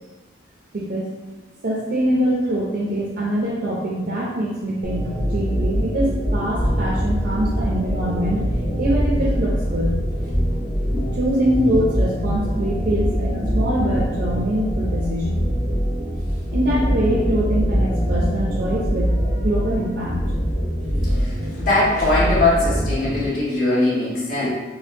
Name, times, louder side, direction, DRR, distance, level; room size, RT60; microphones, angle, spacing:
voice 1, 0.7-1.1 1.6-8.4 8.8-10.0 11.1-15.5 16.5-20.2, right 1 dB, 55° right, -4 dB, 0.5 m, -24 dB
sound 1, 4.8-23.3, equal, 20° left, 0.5 m, -23 dB
voice 2, 21.6-24.5, left 2 dB, 50° left, -9 dB, 1.5 m, -20 dB
4.1 x 2.1 x 2.6 m, 1.2 s
head